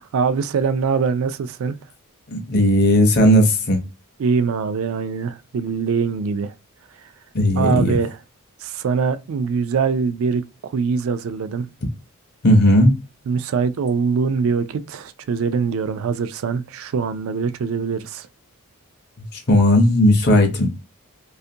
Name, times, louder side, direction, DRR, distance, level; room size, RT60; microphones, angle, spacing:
voice 1, 0.1-1.8 4.2-6.5 7.5-8.2 8.6-11.7 13.3-18.3, right 5 dB, 60° right, 0.3 m, -23 dB
voice 2, 2.3-3.8 7.3-8.0 12.4-12.9 19.3-20.7, left 1 dB, 45° left, 0.6 m, -15 dB
2.5 x 2.4 x 2.7 m
head